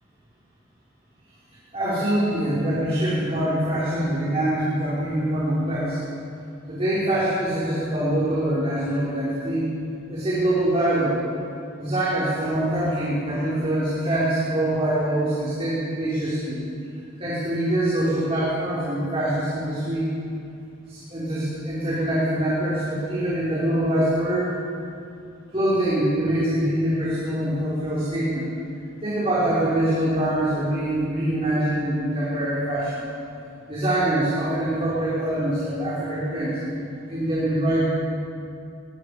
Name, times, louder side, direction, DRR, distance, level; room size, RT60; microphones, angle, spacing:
voice 1, 1.7-6.0 6.7-9.6 10.1-11.2 11.8-16.6 17.2-20.1 20.9-24.6 25.5-28.5 29.0-33.0 33.7-36.6 37.1-37.8, right 1 dB, 30° right, -10 dB, 5.7 m, -24 dB
25.5 x 19.5 x 5.3 m, 2.5 s
head